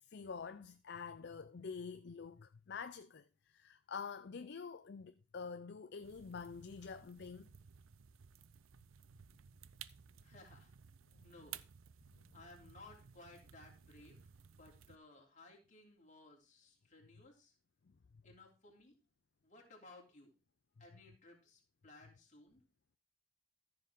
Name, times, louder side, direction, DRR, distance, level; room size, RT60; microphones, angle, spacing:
voice 1, 0.1-7.5 11.1-11.2 17.9-18.0, left 5 dB, 50° left, 0.4 m, -47 dB
sound 1, 6.0-15.0, right 9 dB, 70° right, 0.5 m, -57 dB
voice 2, 10.2-10.7 11.2-11.6 12.3-17.5 18.2-18.9 19.4-20.3 20.8-22.6, left 2 dB, 35° left, 3.1 m, -59 dB
14.0 x 6.7 x 3.6 m
head